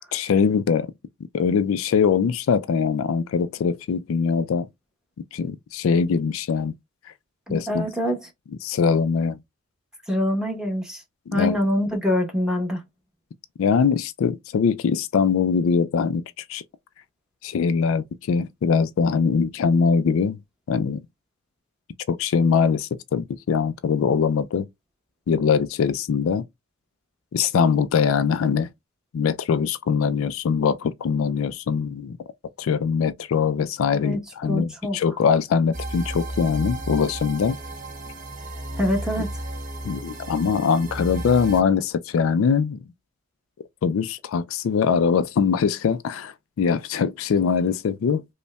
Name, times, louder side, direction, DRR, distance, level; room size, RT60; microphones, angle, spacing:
voice 1, 0.1-0.9 1.3-4.7 5.3-6.7 7.5-7.9 8.6-9.4 11.3-11.6 13.6-16.2 16.5-16.6 17.4-20.4 20.7-21.0 22.1-24.7 25.3-26.4 27.3-28.7 29.1-32.2 32.6-37.6 39.8-42.8 43.8-48.3, left 6 dB, 85° left, 0.3 m, -22 dB
voice 2, 7.5-8.3 10.1-11.0 11.3-12.8 33.9-35.0 38.8-39.3, equal, 5° right, 1.0 m, -25 dB
sound 1, 35.7-41.6, right 1 dB, 40° right, 0.8 m, -33 dB
5.1 x 2.1 x 2.2 m
head